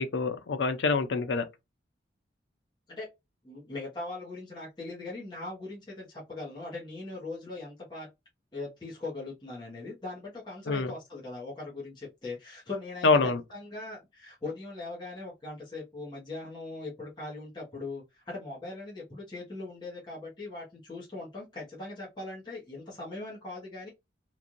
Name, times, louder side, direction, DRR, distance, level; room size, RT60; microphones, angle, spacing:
voice 1, 0.0-1.4 10.7-10.9 13.0-13.4, left 4 dB, 85° left, 0.5 m, -25 dB
voice 2, 3.4-8.1 8.5-23.9, left 2 dB, 25° left, 1.1 m, -40 dB
3.1 x 2.5 x 2.5 m
head